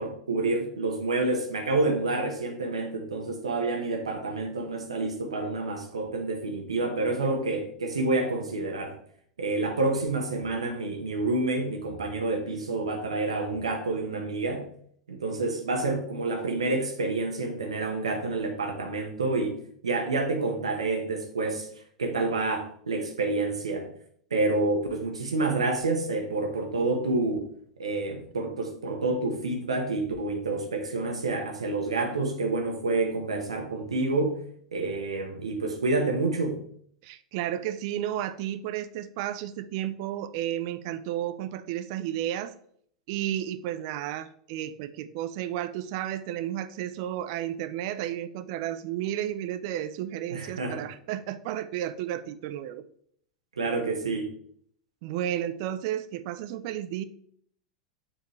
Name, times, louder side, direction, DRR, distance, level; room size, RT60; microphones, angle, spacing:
voice 1, 0.0-9.0 9.4-14.6 15.1-19.6 19.8-21.7 22.0-23.9 24.3-27.5 27.8-34.4 34.7-36.6 50.3-50.8 53.6-54.3, right 3 dB, 85° right, 4 dB, 1.2 m, -28 dB
voice 2, 37.0-42.5 43.1-52.8 55.0-57.0, right 12 dB, 55° right, 12 dB, 0.5 m, -32 dB
7.1 x 4.4 x 3.2 m, 0.63 s
figure-of-eight pair, 85°, 3 cm